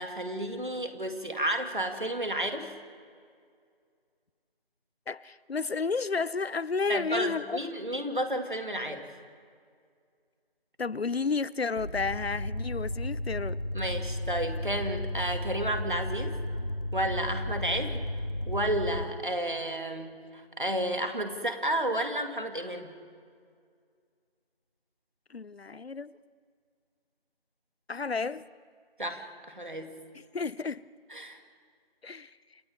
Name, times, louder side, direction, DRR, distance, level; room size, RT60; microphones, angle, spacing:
voice 1, 0.0-2.7 6.9-9.1 13.7-16.4 16.9-18.0 18.5-22.9 29.0-29.9 31.1-31.4, right 1 dB, 55° right, 2.3 m, -32 dB
voice 2, 5.1-7.6 7.9-8.0 10.8-13.6 25.3-26.1 27.9-28.5 30.1-30.8 32.0-32.4, left 4 dB, 80° left, 0.7 m, -32 dB
sound 1, 11.8-19.1, left 1 dB, 40° left, 1.3 m, -33 dB
28.0 x 26.5 x 3.6 m
figure-of-eight pair, 180°, 30 cm